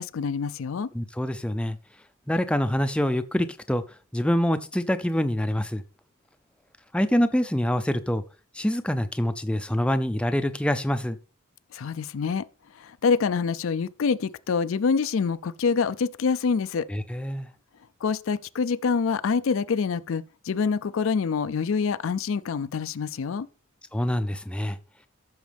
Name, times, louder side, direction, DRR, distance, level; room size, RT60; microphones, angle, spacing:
voice 1, 0.0-0.9 11.7-12.5 12.7-16.9 18.0-23.5, left 5 dB, 65° left, 0.4 m, -26 dB
voice 2, 0.9-1.8 2.3-3.8 4.1-5.8 6.9-8.2 8.5-11.2 16.9-17.5 23.9-24.8, equal, 5° left, 0.4 m, -25 dB
14.0 x 6.4 x 3.4 m
head